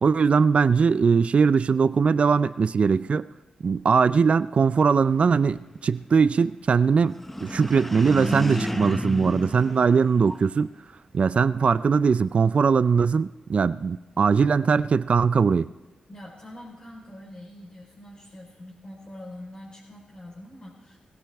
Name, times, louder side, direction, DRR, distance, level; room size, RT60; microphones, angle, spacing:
voice 1, 0.0-3.3 3.6-10.7 11.1-15.7, right 5 dB, 55° right, 15 dB, 0.4 m, -21 dB
sound 1, 7.1-10.6, equal, 10° left, 0.8 m, -31 dB
voice 2, 16.1-21.0, left 1 dB, 45° left, -5 dB, 4.2 m, -44 dB
20.0 x 16.5 x 3.5 m, 1.1 s
cardioid pair, 60°, 2 cm